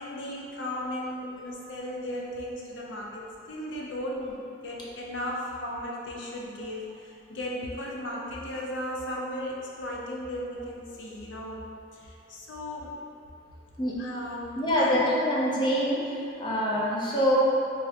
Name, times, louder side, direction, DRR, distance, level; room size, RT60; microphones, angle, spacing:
voice 1, 0.0-11.6 11.9-13.0 14.0-14.9, left 1 dB, 85° left, -3 dB, 0.5 m, -36 dB
voice 2, 14.6-17.4, equal, 25° left, -5 dB, 0.4 m, -25 dB
4.5 x 2.0 x 2.8 m, 2.5 s
head